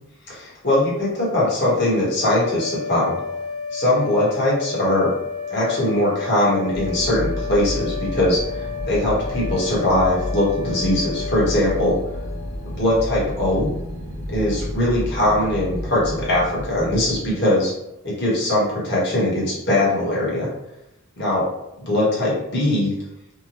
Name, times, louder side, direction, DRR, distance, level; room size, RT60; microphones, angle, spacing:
voice 1, 0.3-3.2 3.7-5.1 5.5-12.0 12.7-13.7 14.3-17.7 18.0-20.5 21.2-21.5 21.8-22.9, left 1 dB, 50° left, -6 dB, 1.0 m, -21 dB
sound 1, 2.1-12.7, left 6 dB, 5° right, 0.6 m, -32 dB
sound 2, 6.7-17.3, left 1 dB, 90° right, 0.6 m, -31 dB
2.8 x 2.2 x 2.9 m, 0.87 s
head